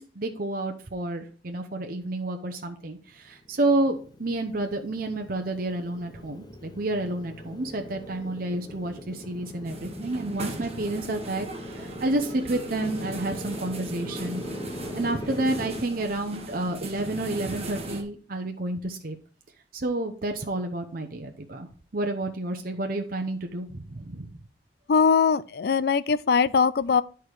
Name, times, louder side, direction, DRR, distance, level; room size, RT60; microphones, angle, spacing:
voice 1, 0.0-11.5 11.7-14.4 15.0-19.2 19.7-21.7 21.9-24.3, right 2 dB, 55° right, 0.8 m, -30 dB
Motorcycle, 3.2-15.8, left 1 dB, 25° left, 0.8 m, -40 dB
sound 1, 9.6-18.0, right 2 dB, 35° right, 1.3 m, -39 dB
voice 2, 24.9-27.0, left 6 dB, 60° left, 0.4 m, -21 dB
10.0 x 4.6 x 4.8 m
head